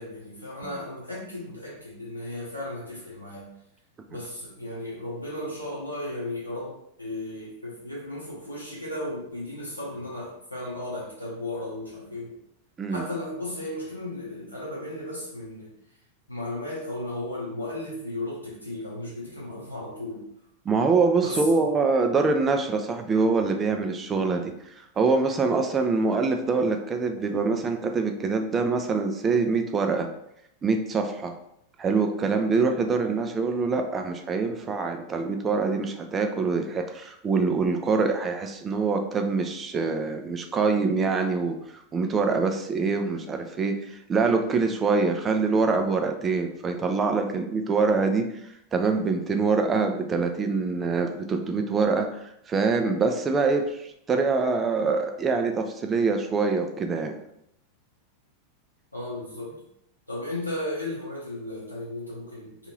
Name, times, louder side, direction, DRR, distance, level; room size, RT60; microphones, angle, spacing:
voice 1, 0.0-3.5 4.1-12.4 12.9-15.7 16.3-20.2 21.2-21.6 58.9-59.6 60.1-62.7, left 1 dB, 85° left, -6 dB, 0.6 m, -35 dB
voice 2, 20.7-24.5 25.0-30.1 30.6-31.3 31.8-41.6 41.9-48.3 48.7-57.2, right 4 dB, 20° right, 5 dB, 0.4 m, -25 dB
2.7 x 2.4 x 3.0 m, 0.79 s
figure-of-eight pair, 90°, 0 cm